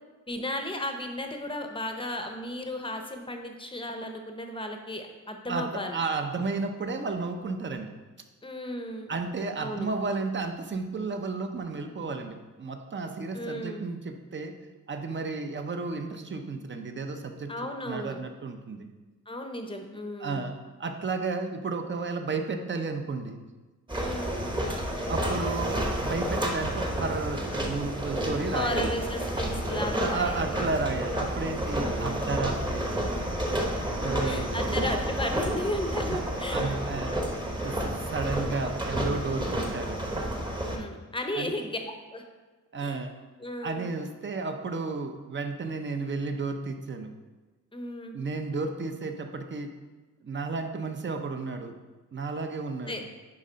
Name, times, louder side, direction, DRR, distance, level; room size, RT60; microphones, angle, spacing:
voice 1, 0.3-6.0 8.4-9.1 9.6-9.9 13.3-13.8 17.5-18.2 19.3-20.5 23.9-24.3 28.5-30.4 31.8-32.4 33.9-37.1 40.6-41.8 42.1-42.2 42.8-43.0 43.4-43.9 47.7-48.1 52.9-53.0, left 1 dB, 15° left, 4 dB, 0.7 m, -35 dB
voice 2, 5.5-8.0 9.1-14.5 14.9-17.5 17.9-18.9 20.2-23.4 25.1-28.9 29.9-32.9 34.0-34.8 36.1-37.2 37.6-40.0 41.3-41.5 42.7-43.1 43.6-47.1 48.1-49.7 50.2-51.7 52.1-53.0, right 4 dB, 35° right, 6 dB, 0.7 m, -33 dB
sound 1, 23.9-40.8, right 1 dB, 15° right, 1.0 m, -30 dB
9.8 x 3.8 x 5.1 m, 1.3 s
wide cardioid pair, 155°, 31 cm